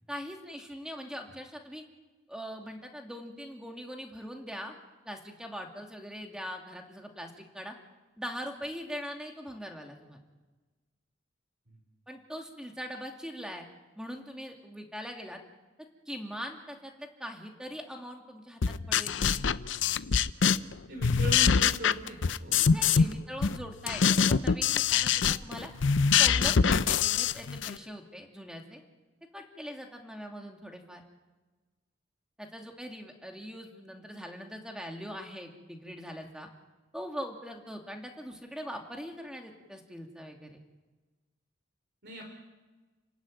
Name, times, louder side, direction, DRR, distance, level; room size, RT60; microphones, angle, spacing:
voice 1, 0.1-1.8 2.3-4.7 5.1-7.7 8.2-10.2 12.1-13.7 14.0-15.4 16.1-19.1 22.6-25.7 26.2-28.8 29.3-31.0 32.4-36.5 36.9-40.6, equal, 5° right, 2 dB, 2.6 m, -41 dB
sound 1, 18.6-20.7 21.0-23.1 23.4-27.8, left 6 dB, 75° left, 0.6 m, -24 dB
voice 2, 20.9-23.0 42.0-42.2, equal, 60° right, 1 dB, 4.2 m, -40 dB
30.0 x 13.0 x 9.2 m, 1.3 s
head